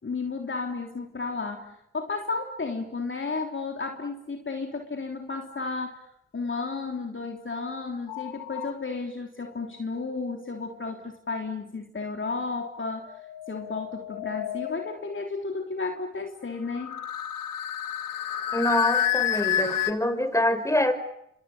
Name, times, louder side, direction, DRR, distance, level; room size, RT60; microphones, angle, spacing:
voice 1, 0.0-6.0 6.3-13.2 13.5-17.0, left 4 dB, 35° left, 3 dB, 3.4 m, -33 dB
sound 1, 8.1-8.7 13.1-15.1 16.7-19.9, left 10 dB, 85° left, 1.8 m, -30 dB
voice 2, 18.5-20.9, left 1 dB, 10° left, 9 dB, 5.5 m, -25 dB
28.5 x 26.0 x 6.8 m, 0.76 s
hypercardioid pair, 45°, 32 cm